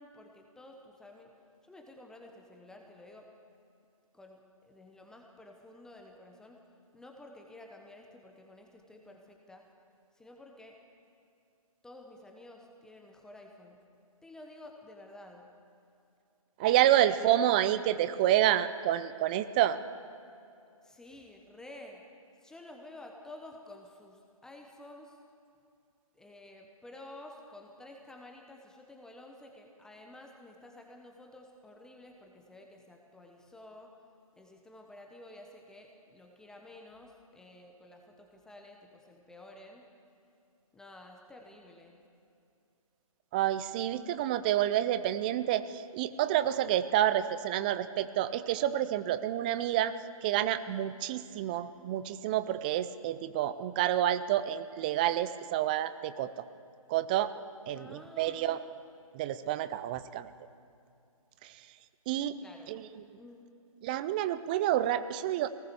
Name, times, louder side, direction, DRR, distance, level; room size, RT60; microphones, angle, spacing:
voice 1, 0.0-1.3 1.6-3.3 4.1-6.6 6.9-9.7 10.1-10.8 11.8-13.8 14.2-15.5 16.8-17.3 20.8-22.0 22.4-25.2 26.1-33.9 34.4-39.9 40.7-42.0 57.7-58.7 62.4-62.7 63.2-63.5, left 1 dB, 5° left, 2 dB, 1.0 m, -51 dB
voice 2, 16.6-19.8 43.3-49.9 50.2-56.3 56.9-57.3 57.7-58.6 59.1-60.3 61.4-61.5 62.1-62.4 62.7-62.9 63.8-65.5, right 12 dB, 15° right, 13 dB, 0.4 m, -28 dB
22.0 x 18.5 x 6.9 m, 2.6 s
figure-of-eight pair, 140°, 19 cm